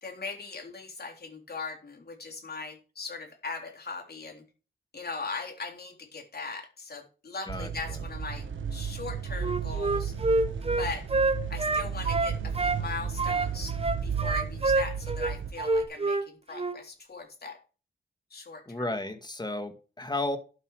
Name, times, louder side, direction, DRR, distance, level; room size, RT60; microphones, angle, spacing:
voice 1, 0.0-4.4 4.9-10.2 10.8-11.1 11.5-13.8 14.0-17.6 18.3-19.0, left 4 dB, 55° left, 2 dB, 3.7 m, -39 dB
voice 2, 7.5-8.0 18.7-20.4, left 2 dB, 20° left, 7 dB, 2.1 m, -33 dB
sound 1, 7.5-15.8, right 7 dB, 85° right, 1.5 m, -34 dB
Wind instrument woodwind instrument, 9.4-12.8 13.2-16.3 16.5-16.8, right 2 dB, 30° right, 1.0 m, -27 dB
12.0 x 7.9 x 5.0 m, 0.35 s
cardioid pair, 75°, 20 cm